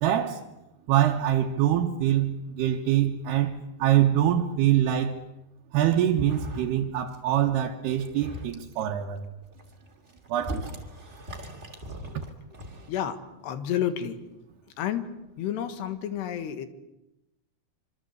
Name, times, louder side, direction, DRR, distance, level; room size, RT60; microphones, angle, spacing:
voice 1, 0.0-0.4 0.9-5.2 5.7-9.3 10.3-10.8, right 11 dB, 70° right, 3.2 m, -24 dB
sound 1, 6.1-6.8 7.1-7.5 7.9-8.8 9.4-12.9, equal, 20° right, 2.2 m, -39 dB
voice 2, 12.9-14.2 14.8-15.1 15.4-16.7, left 10 dB, 75° left, 3.6 m, -30 dB
26.0 x 25.5 x 8.2 m
omnidirectional pair, 5.1 m